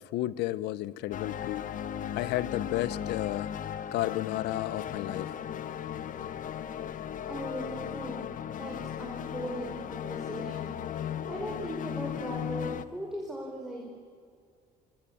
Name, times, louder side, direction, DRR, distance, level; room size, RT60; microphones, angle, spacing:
voice 1, 0.0-1.7 2.1-3.5 3.9-5.3, left 15 dB, 85° left, 19 dB, 0.9 m, -32 dB
sound 1, 1.1-12.9, left 9 dB, 50° left, 1.2 m, -36 dB
voice 2, 7.3-8.2 8.6-13.8, equal, 5° right, -2 dB, 4.9 m, -39 dB
27.0 x 24.5 x 8.8 m, 2.2 s
cardioid pair, 110°, 17 cm